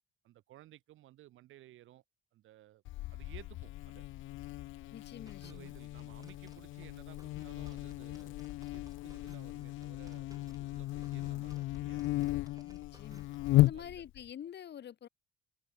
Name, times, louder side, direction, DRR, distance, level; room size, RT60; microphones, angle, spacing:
voice 1, 0.2-2.0 2.3-2.8 3.1-4.0 5.4-8.4 8.7-12.1 13.5-14.1, right 14 dB, 85° right, 3.7 m, -57 dB
Buzz, 2.9-14.3, left 17 dB, 80° left, 0.4 m, -35 dB
voice 2, 4.9-5.7 12.6-13.3 13.6-15.1, left 9 dB, 60° left, 2.2 m, -47 dB
sound 1, 5.3-13.8, right 2 dB, 15° right, 6.7 m, -61 dB
cardioid pair, 90°, 20 cm